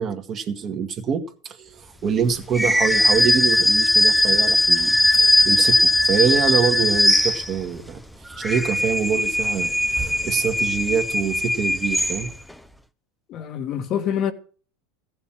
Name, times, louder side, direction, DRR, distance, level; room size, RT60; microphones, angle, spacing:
voice 1, 0.0-8.0 8.4-12.3, right 6 dB, 40° right, 2.1 m, -25 dB
sound 1, 2.5-7.8 8.3-12.5, left 1 dB, ahead, 0.8 m, -19 dB
voice 2, 13.3-14.3, left 9 dB, 50° left, 1.4 m, -25 dB
15.0 x 6.9 x 7.5 m
hypercardioid pair, 95°, 0 cm